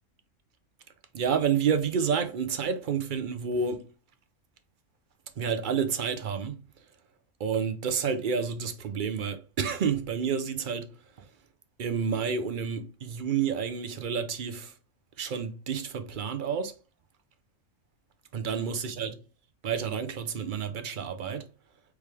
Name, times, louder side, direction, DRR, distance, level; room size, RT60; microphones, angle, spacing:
voice 1, 1.1-3.8 5.4-6.6 7.4-10.9 11.8-14.7 15.2-16.7 18.3-19.2 19.6-21.4, right 6 dB, 50° right, 0.6 m, -29 dB
4.7 x 3.4 x 3.4 m
omnidirectional pair, 1.3 m